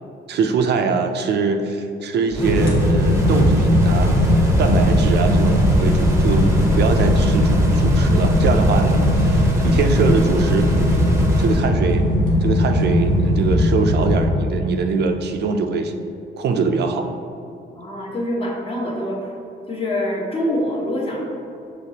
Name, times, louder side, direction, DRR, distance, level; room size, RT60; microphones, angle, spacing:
voice 1, 0.3-4.1 4.6-10.7 11.4-12.1 12.4-15.9 16.4-17.1, right 4 dB, 60° right, 5 dB, 0.4 m, -22 dB
sound 1, 2.3-11.7, right 1 dB, 15° right, 0.7 m, -22 dB
sound 2, 2.4-14.2, left 1 dB, 85° left, 1.0 m, -19 dB
voice 2, 17.7-19.3 19.7-21.2, left 1 dB, 30° left, -3 dB, 1.1 m, -25 dB
5.9 x 3.1 x 2.8 m, 2.7 s
cardioid pair, 90°, 20 cm